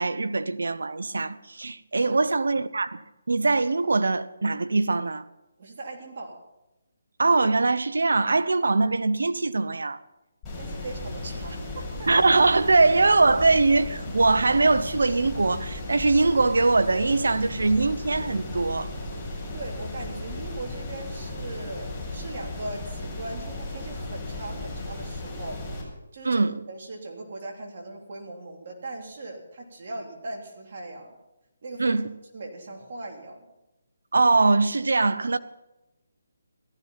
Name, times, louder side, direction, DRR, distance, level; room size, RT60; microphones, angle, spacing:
voice 1, 0.0-3.0 3.3-5.2 7.2-10.0 12.1-18.9 26.2-26.6 31.8-32.1 34.1-35.4, right 3 dB, 80° right, 0.9 m, -22 dB
voice 2, 5.6-6.4 10.5-12.1 19.5-25.6 26.1-31.1 31.6-32.0 32.3-33.5, right 2 dB, 50° right, 3.5 m, -39 dB
sound 1, 10.4-25.8, left 2 dB, 10° left, 7.3 m, -35 dB
15.0 x 14.0 x 5.8 m
hypercardioid pair, 160°, 0 cm